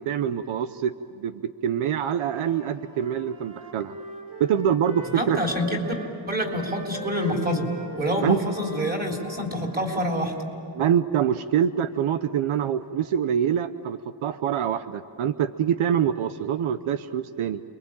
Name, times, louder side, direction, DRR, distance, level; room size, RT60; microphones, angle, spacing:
voice 1, 0.0-4.0 4.4-5.4 8.2-8.4 10.7-17.6, right 9 dB, 80° right, 11 dB, 0.9 m, -25 dB
Wind instrument woodwind instrument, 2.2-10.5, right 2 dB, 45° right, 5.7 m, -40 dB
voice 2, 5.1-5.8 6.3-7.7 8.0-10.3, equal, 20° right, 1 dB, 3.8 m, -26 dB
29.0 x 22.5 x 8.8 m, 2.7 s
wide cardioid pair, 145°, 49 cm